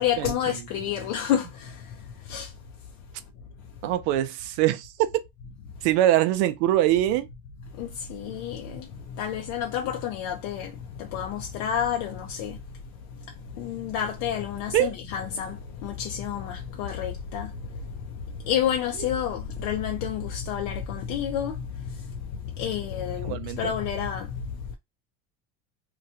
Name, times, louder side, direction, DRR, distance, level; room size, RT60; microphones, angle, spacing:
voice 1, 0.0-2.6 3.6-3.9 7.7-24.7, left 9 dB, 80° left, 0.6 m, -30 dB
voice 2, 3.8-4.9 5.8-7.3 14.7-14.9 23.2-23.7, right 13 dB, 85° right, 0.5 m, -23 dB
2.9 x 2.2 x 2.8 m
cardioid pair, 130°, 32 cm